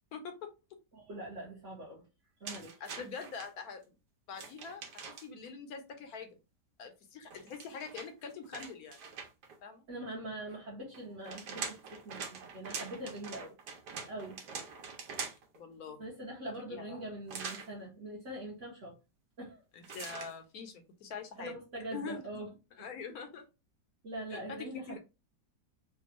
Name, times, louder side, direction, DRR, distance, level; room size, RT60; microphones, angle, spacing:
voice 1, 0.1-0.5 2.8-3.9 4.3-6.4 6.8-9.0 9.6-9.8 15.5-16.1 16.5-17.1 19.7-21.6 21.9-22.3 22.8-23.4 24.3-25.0, left 5 dB, 65° left, 1.0 m, -44 dB
voice 2, 0.9-2.1 2.4-2.7 9.9-13.6 14.1-14.4 16.0-18.9 19.4-19.6 21.4-22.5 24.0-25.0, right 1 dB, 50° right, 1.2 m, -43 dB
sound 1, 2.4-3.5 4.3-5.5 7.3-9.6 10.9-15.6 17.3-17.7 19.8-20.3, right 5 dB, 75° right, 1.4 m, -43 dB
3.4 x 2.3 x 3.0 m
omnidirectional pair, 1.9 m